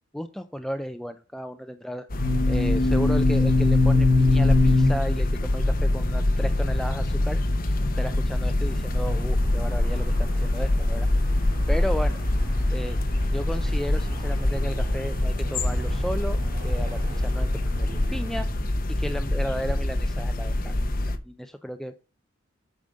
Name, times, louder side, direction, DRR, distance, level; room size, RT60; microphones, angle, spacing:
voice 1, 0.1-2.1 2.5-11.1 11.7-12.2 12.7-13.0 13.3-18.5 18.9-20.7 21.0-21.9, equal, ahead, 8 dB, 0.4 m, -34 dB
sound 1, 2.1-21.2, left 2 dB, 45° left, 1.0 m, -23 dB
Traffic noise roadway noise, 8.6-18.5, right 1 dB, 45° right, 2.9 m, -38 dB
8.6 x 5.2 x 6.4 m, 0.33 s
head